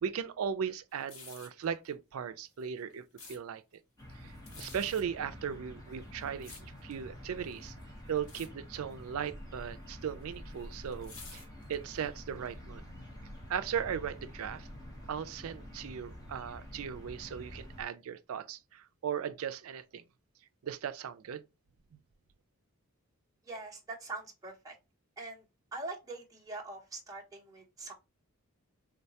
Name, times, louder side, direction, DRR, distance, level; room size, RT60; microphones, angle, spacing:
voice 1, 0.0-3.0 3.3-3.6 4.2-7.7 8.1-12.8 13.5-14.7 15.1-20.0 20.6-21.4, right 8 dB, 65° right, 0.3 m, -37 dB
sound 1, 0.9-1.6 2.5-3.4 4.3-5.0 5.9-7.0 7.5-7.8 8.2-8.5 8.7-9.0 9.9-12.0 12.5-12.6, left 4 dB, 55° left, 1.0 m, -51 dB
sound 2, 4.0-17.8, equal, 15° left, 0.9 m, -48 dB
voice 2, 23.4-24.8 25.2-25.4 25.7-27.9, right 2 dB, 15° right, 0.8 m, -43 dB
3.8 x 2.2 x 2.7 m
head